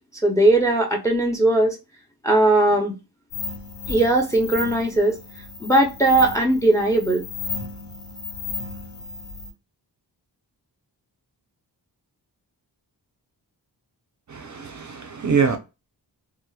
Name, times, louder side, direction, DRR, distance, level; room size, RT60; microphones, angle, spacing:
voice 1, 0.2-1.8 2.2-2.9 3.9-5.2 5.6-7.2, right 2 dB, 5° left, 0.5 m, -19 dB
sound 1, 3.3-9.5, left 4 dB, 70° left, 1.4 m, -34 dB
voice 2, 14.3-15.6, right 6 dB, 45° right, 0.5 m, -24 dB
2.9 x 2.1 x 2.3 m
wide cardioid pair, 80°, 43 cm